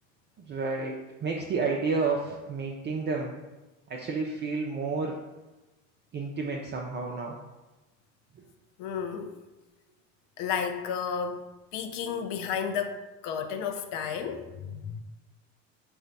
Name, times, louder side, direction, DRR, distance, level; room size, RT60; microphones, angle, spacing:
voice 1, 0.4-3.4 3.9-5.2 6.1-7.4, right 4 dB, 30° right, 0.4 m, -31 dB
voice 2, 8.8-9.4 10.4-11.4 11.7-15.0, left 7 dB, 55° left, 0.6 m, -32 dB
4.0 x 2.3 x 3.9 m
hypercardioid pair, 80°, 39 cm